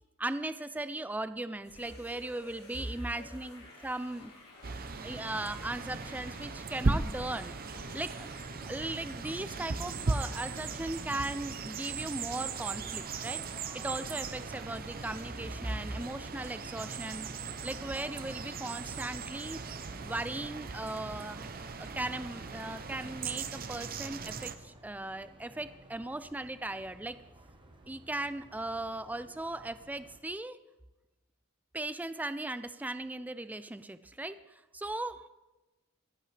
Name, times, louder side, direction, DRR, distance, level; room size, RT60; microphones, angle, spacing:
voice 1, 0.2-4.3 5.0-19.6 20.0-21.4 21.8-27.2 27.9-30.6 31.7-35.3, right 2 dB, 5° right, 13 dB, 0.4 m, -38 dB
sound 1, 1.6-10.9, left 2 dB, 90° left, 4.0 m, -53 dB
sound 2, 4.6-24.6, right 4 dB, 45° right, 0.7 m, -38 dB
sound 3, 12.5-30.2, right 2 dB, 25° right, 1.1 m, -55 dB
24.5 x 8.5 x 3.3 m, 1.1 s
head